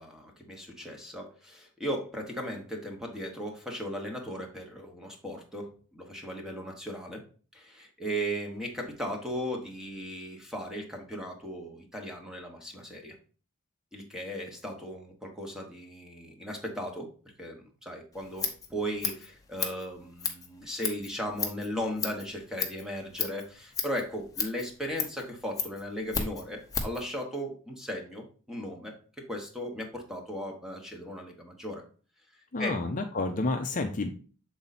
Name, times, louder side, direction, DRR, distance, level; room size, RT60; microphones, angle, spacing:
voice 1, 0.0-7.2 7.5-13.2 13.9-17.1 17.4-31.8 32.6-32.9, equal, ahead, 2 dB, 1.2 m, -37 dB
Scissors, 18.1-27.1, left 6 dB, 15° left, 0.9 m, -35 dB
voice 2, 32.5-34.1, left 2 dB, 35° left, 4 dB, 0.6 m, -30 dB
7.1 x 3.9 x 4.1 m, 0.39 s
head